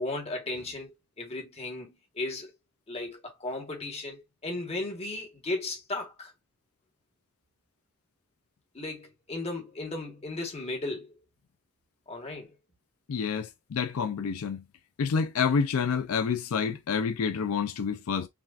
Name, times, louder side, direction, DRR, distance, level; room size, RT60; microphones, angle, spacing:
voice 1, 0.0-2.5 2.9-6.3 8.7-11.2 12.1-12.6, left 2 dB, 30° left, 1.3 m, -35 dB
voice 2, 13.1-14.6 15.0-18.3, left 6 dB, 80° left, 0.4 m, -28 dB
5.9 x 2.3 x 2.4 m
head